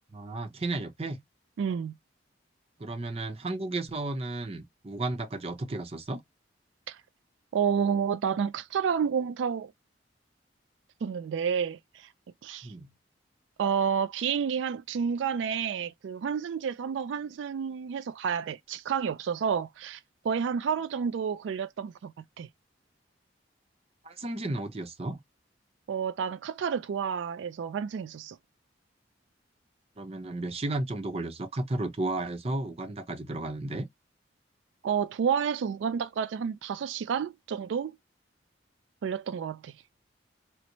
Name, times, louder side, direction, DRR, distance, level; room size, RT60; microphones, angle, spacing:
voice 1, 0.1-1.2 2.8-6.2 12.6-12.9 24.0-25.2 30.0-33.9, right 2 dB, 35° right, 0.7 m, -33 dB
voice 2, 1.6-1.9 6.9-7.0 7.5-9.7 11.0-12.1 12.4-12.7 13.6-22.1 22.4-22.5 25.9-28.4 34.8-37.9 39.0-39.7, right 7 dB, 85° right, 0.3 m, -30 dB
4.4 x 2.1 x 2.6 m
head